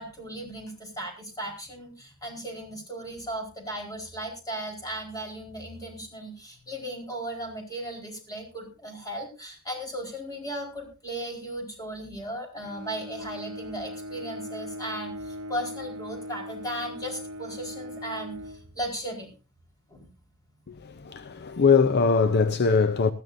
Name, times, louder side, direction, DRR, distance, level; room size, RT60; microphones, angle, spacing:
voice 1, 0.0-18.4 18.8-19.3 19.9-20.1, right 1 dB, 15° left, 4.5 m, -36 dB
Bowed string instrument, 12.6-19.3, equal, 70° right, 0.9 m, -40 dB
voice 2, 20.7-23.1, left 5 dB, 50° left, 0.6 m, -22 dB
19.5 x 14.0 x 2.7 m
head